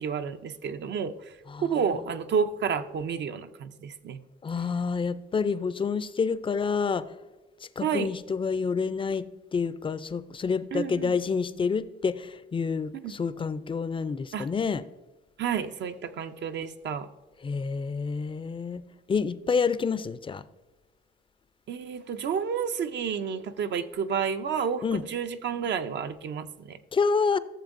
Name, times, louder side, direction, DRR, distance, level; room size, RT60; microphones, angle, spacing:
voice 1, 0.0-4.2 7.8-8.1 10.7-11.1 12.9-13.1 14.3-14.5 15.4-17.1 21.7-26.8, right 7 dB, 60° right, 9 dB, 0.6 m, -30 dB
voice 2, 4.4-7.1 7.6-9.3 9.5-14.8 17.4-18.8 19.1-20.4 24.8-25.0 26.9-27.4, left 5 dB, 25° left, 15 dB, 0.4 m, -28 dB
14.0 x 7.0 x 2.6 m, 1.2 s
cardioid pair, 90°, 20 cm